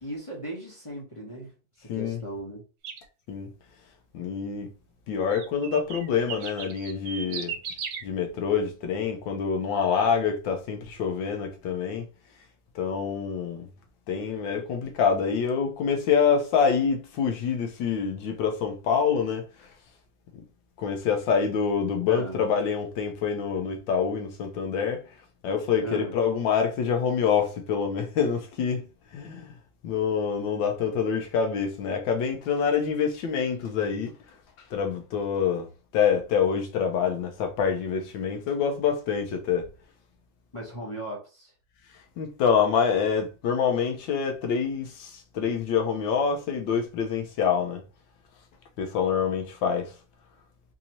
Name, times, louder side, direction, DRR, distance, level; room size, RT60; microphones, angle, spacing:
voice 1, 0.0-1.5 1.8-2.6 22.1-22.5 25.8-26.2 40.5-41.5, right 1 dB, 30° left, 0.6 m, -37 dB
sound 1, 2.8-3.1 5.3-8.0, right 7 dB, 70° right, 1.3 m, -36 dB
voice 2, 4.1-4.7 5.1-7.6 8.0-12.0 12.7-13.7 14.1-19.4 20.8-25.0 25.4-28.9 29.1-29.5 29.8-34.1 34.7-35.7 35.9-39.7 42.2-47.8 48.8-49.9, left 6 dB, 80° left, 1.5 m, -26 dB
4.1 x 2.8 x 2.8 m
omnidirectional pair, 2.1 m